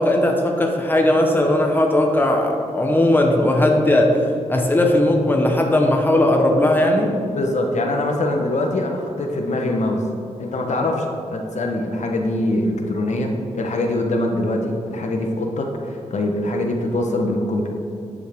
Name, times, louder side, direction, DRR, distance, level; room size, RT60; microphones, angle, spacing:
voice 1, 0.0-4.2 4.5-7.1, left 1 dB, 15° left, 1 dB, 1.0 m, -17 dB
voice 2, 7.3-10.0 10.4-11.0 11.3-17.7, left 1 dB, 65° left, 2 dB, 1.1 m, -23 dB
10.5 x 7.2 x 3.6 m, 2.6 s
wide cardioid pair, 100°, 13 cm